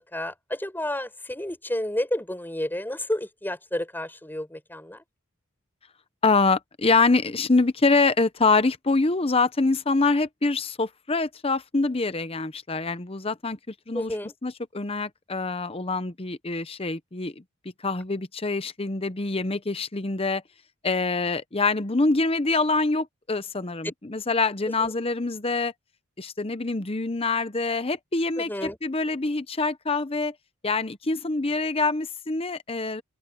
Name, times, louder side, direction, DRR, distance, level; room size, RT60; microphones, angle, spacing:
voice 1, 0.1-5.0 13.9-14.3 24.8-24.9 28.4-28.8, left 1 dB, 10° left, 5.7 m, -31 dB
voice 2, 6.2-13.6 13.9-14.2 14.4-17.4 17.8-20.4 20.8-25.7 26.2-30.3 30.6-33.0, left 3 dB, 25° left, 0.8 m, -25 dB
open air
head